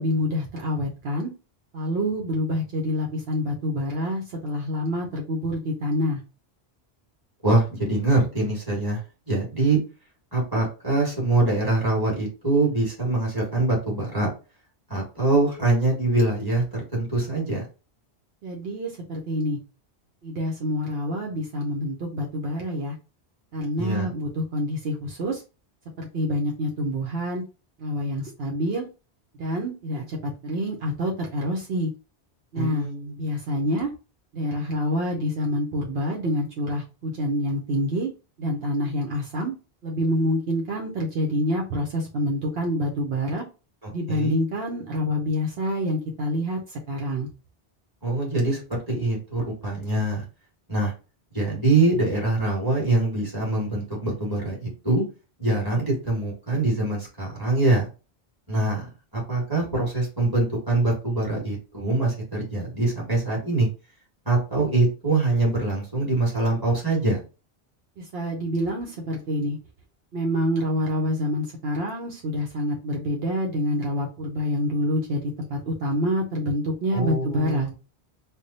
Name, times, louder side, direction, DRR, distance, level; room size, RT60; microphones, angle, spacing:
voice 1, 0.0-1.3 1.7-6.2 18.4-19.6 20.2-22.9 23.5-25.4 26.0-27.4 27.8-28.9 29.4-31.9 32.5-32.9 33.2-33.9 34.3-38.1 38.4-39.5 39.8-43.5 43.9-47.3 68.0-69.6 70.1-77.7, equal, 70° right, -1 dB, 0.9 m, -27 dB
voice 2, 7.4-9.0 9.3-9.8 10.3-14.3 14.9-17.6 23.8-24.1 32.5-33.2 43.8-44.4 48.0-50.2 50.7-50.9 51.3-55.0 55.4-57.9 58.5-58.9 59.1-63.7 64.2-67.2 76.9-77.7, right 2 dB, 20° right, -4 dB, 1.7 m, -24 dB
3.4 x 2.1 x 4.0 m, 0.32 s
omnidirectional pair, 1.1 m